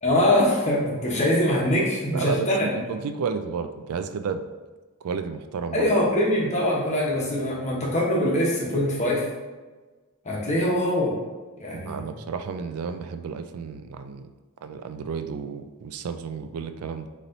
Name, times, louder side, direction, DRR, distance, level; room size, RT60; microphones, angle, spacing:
voice 1, 0.0-2.8 5.7-9.3 10.2-11.1 11.6-12.1, left 1 dB, 35° left, -4 dB, 1.1 m, -23 dB
voice 2, 2.1-4.5 5.0-5.9 11.7-14.3 14.6-17.1, right 5 dB, 80° right, 9 dB, 0.4 m, -32 dB
4.1 x 3.1 x 3.9 m, 1.3 s
head